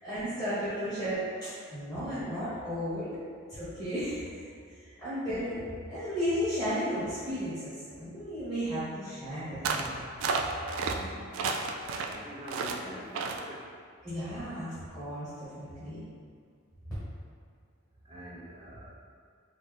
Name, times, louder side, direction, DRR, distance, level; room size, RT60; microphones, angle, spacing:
voice 1, 0.0-3.2 3.5-4.4 4.7-5.6 5.9-9.9 14.0-15.3 15.6-16.0, equal, 5° left, -14 dB, 1.2 m, -34 dB
sound 1, 9.6-9.9 10.2-11.0 11.3-12.2 12.5-12.8 13.1-13.4, right 4 dB, 85° right, 0.3 m, -31 dB
voice 2, 10.8-11.6 12.0-13.6 18.0-18.9, equal, 25° right, -6 dB, 0.7 m, -45 dB
4.1 x 2.7 x 3.2 m, 2.1 s
head